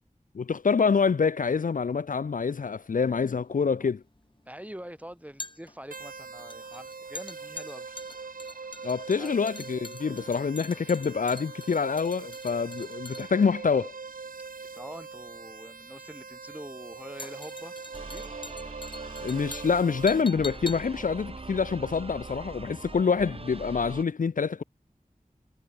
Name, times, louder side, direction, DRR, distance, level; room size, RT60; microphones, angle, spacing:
voice 1, 0.3-4.0 8.8-13.9 19.2-24.6, left 5 dB, 70° left, 0.5 m, -26 dB
sound 1, 3.3-22.5 22.8-22.9, left 2 dB, 35° left, 3.4 m, -45 dB
voice 2, 4.4-8.0 9.2-9.4 14.7-17.7 18.1-18.4, equal, 10° right, 3.5 m, -44 dB
sound 2, 5.9-20.2, right 4 dB, 75° right, 0.8 m, -42 dB
sound 3, 17.9-24.0, right 3 dB, 40° right, 0.8 m, -42 dB
wide cardioid pair, 40°, 14 cm